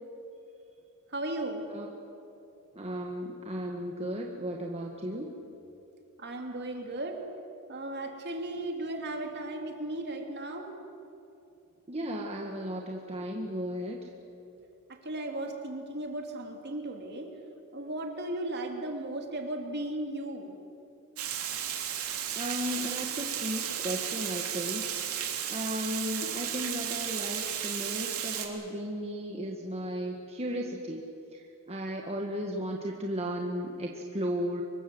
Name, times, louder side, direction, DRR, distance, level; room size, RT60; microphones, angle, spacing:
voice 1, 1.1-1.7 6.2-7.2 7.7-10.7 14.9-17.3 17.7-20.6, right 1 dB, 50° right, 3 dB, 2.9 m, -36 dB
voice 2, 2.7-5.3 11.9-14.1 22.3-25.1 25.5-31.0 31.3-34.6, equal, 30° right, 1 dB, 1.6 m, -35 dB
Water, 21.2-28.5, right 9 dB, 80° right, 3.0 m, -34 dB
25.5 x 22.5 x 7.9 m, 2.8 s
head